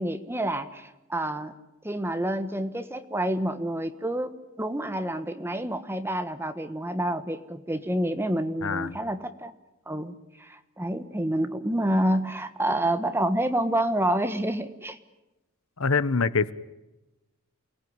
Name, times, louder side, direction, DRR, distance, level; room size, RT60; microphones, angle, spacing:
voice 1, 0.0-1.5 1.8-4.3 4.6-9.5 9.9-15.0, right 1 dB, 10° right, 1.4 m, -28 dB
voice 2, 8.6-9.0 15.8-16.5, left 4 dB, 70° left, 1.0 m, -24 dB
29.0 x 19.5 x 9.6 m
head